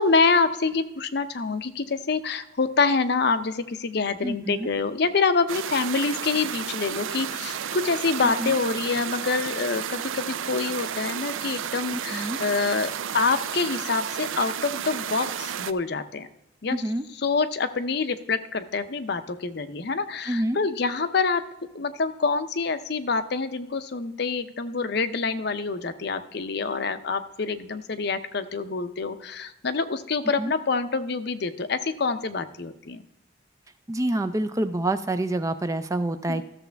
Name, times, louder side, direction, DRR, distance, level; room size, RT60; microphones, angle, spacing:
voice 1, 0.0-16.3 16.6-16.8 17.2-21.4 21.7-33.0 36.3-36.4, left 4 dB, 55° left, 11 dB, 0.6 m, -26 dB
voice 2, 4.2-4.7 8.2-8.6 12.1-12.4 16.7-17.0 20.3-20.6 30.4-30.5 33.9-36.4, right 1 dB, 15° right, 10 dB, 0.4 m, -27 dB
sound 1, 5.5-15.7, right 8 dB, 85° right, 0.5 m, -32 dB
13.5 x 7.1 x 3.4 m, 0.86 s
head